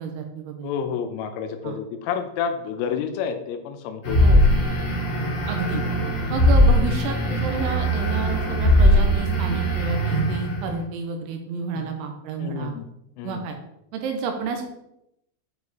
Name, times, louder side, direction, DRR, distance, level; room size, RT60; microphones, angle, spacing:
voice 1, 0.0-0.7 1.6-1.8 4.2-4.4 5.5-5.8 6.3-12.7 13.2-13.6 13.9-14.6, right 5 dB, 85° right, 4 dB, 2.9 m, -30 dB
voice 2, 0.6-4.3 5.1-5.4 11.7-11.9 12.4-12.9 13.2-13.4, left 7 dB, 80° left, 7 dB, 3.1 m, -30 dB
sound 1, 4.0-10.7, equal, 25° left, 1.7 m, -20 dB
9.6 x 4.7 x 4.1 m, 0.82 s
omnidirectional pair, 5.8 m